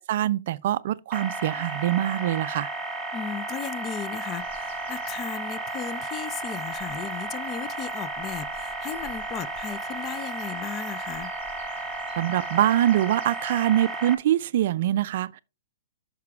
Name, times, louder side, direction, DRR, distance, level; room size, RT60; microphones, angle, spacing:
voice 1, 0.1-2.7 12.2-15.4, right 12 dB, 55° right, 0.3 m, -24 dB
sound 1, 1.1-14.2, right 2 dB, 5° right, 0.8 m, -33 dB
voice 2, 3.1-11.3, left 8 dB, 25° left, 0.4 m, -36 dB
sound 2, 4.4-13.7, equal, 45° left, 4.6 m, -53 dB
10.5 x 6.0 x 2.3 m
hypercardioid pair, 150°, 0 cm